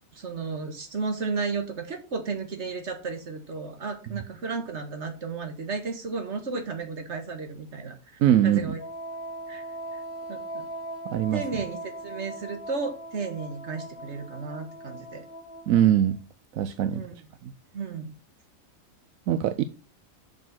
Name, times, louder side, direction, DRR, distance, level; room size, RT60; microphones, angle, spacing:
voice 1, 0.1-8.0 8.4-8.8 9.5-9.7 9.9-10.0 10.3-10.7 11.3-15.3 16.9-17.1 17.7-18.1, right 4 dB, 55° right, 2.0 m, -33 dB
voice 2, 8.2-8.7 11.1-11.4 15.7-16.2 16.5-17.0 17.4-17.5 19.3-19.6, right 11 dB, 85° right, 1.1 m, -22 dB
Wind instrument woodwind instrument, 8.8-16.1, right 1 dB, 45° left, 1.2 m, -40 dB
6.9 x 6.7 x 5.8 m
omnidirectional pair, 1.4 m